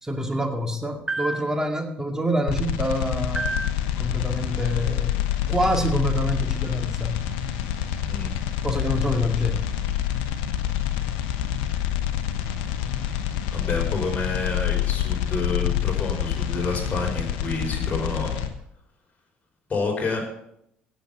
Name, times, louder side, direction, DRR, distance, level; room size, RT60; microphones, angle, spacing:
voice 1, 0.0-3.7 4.0-5.2 5.5-7.2 8.6-9.6, equal, 10° right, 4 dB, 2.3 m, -26 dB
sound 1, 2.5-18.5, left 11 dB, 70° left, 1.1 m, -27 dB
voice 2, 13.5-18.3 19.7-20.2, left 3 dB, 30° left, 0 dB, 5.2 m, -28 dB
16.5 x 7.3 x 5.6 m, 0.76 s
hypercardioid pair, 60°, 5 cm